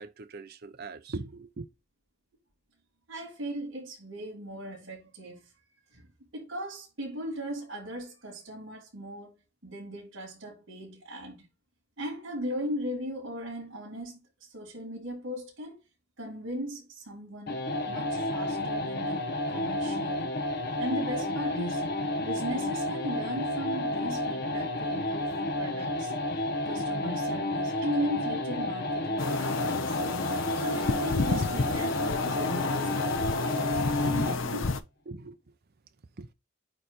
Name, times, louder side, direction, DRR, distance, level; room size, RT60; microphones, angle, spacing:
voice 1, 0.0-1.7 34.0-34.2 35.1-35.5 36.2-36.3, right 3 dB, 55° right, 0.7 m, -40 dB
voice 2, 3.1-5.5 5.9-11.5 12.0-15.8 16.2-20.3 20.8-21.9 22.2-25.3 25.6-26.1 26.6-30.0 30.5-34.7, equal, 70° right, 4.2 m, -38 dB
sound 1, 17.5-34.5, left 1 dB, 55° left, 1.1 m, -31 dB
sound 2, 29.2-34.8, left 4 dB, 75° left, 0.8 m, -31 dB
9.0 x 3.2 x 4.2 m
head